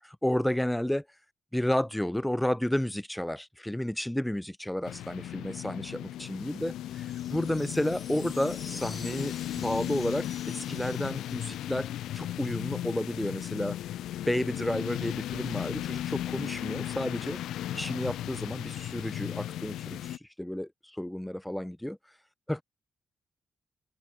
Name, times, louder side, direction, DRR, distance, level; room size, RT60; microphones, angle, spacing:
voice 1, 0.2-1.1 1.5-11.9 12.1-13.8 14.3-17.4 17.7-22.0 22.5-22.6, left 1 dB, 5° left, 0.5 m, -31 dB
sound 1, 4.9-20.2, left 13 dB, 85° left, 0.4 m, -36 dB
sound 2, 7.1-11.8, left 3 dB, 25° left, 4.8 m, -49 dB
open air
supercardioid pair, 60°, 0 cm